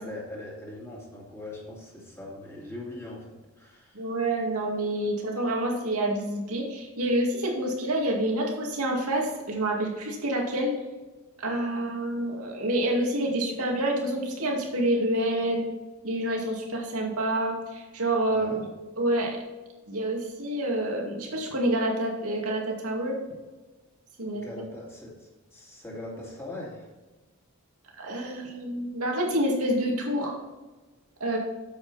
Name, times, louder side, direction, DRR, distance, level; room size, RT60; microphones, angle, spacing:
voice 1, 0.0-4.1 18.3-18.7 24.3-26.9, left 1 dB, 10° left, -4 dB, 2.4 m, -41 dB
voice 2, 3.9-10.7 11.4-15.7 16.0-18.6 19.0-19.4 19.9-23.2 24.2-24.4 28.0-30.3 31.2-31.4, right 1 dB, 90° right, -1 dB, 2.3 m, -28 dB
8.8 x 7.6 x 4.2 m, 1.2 s
head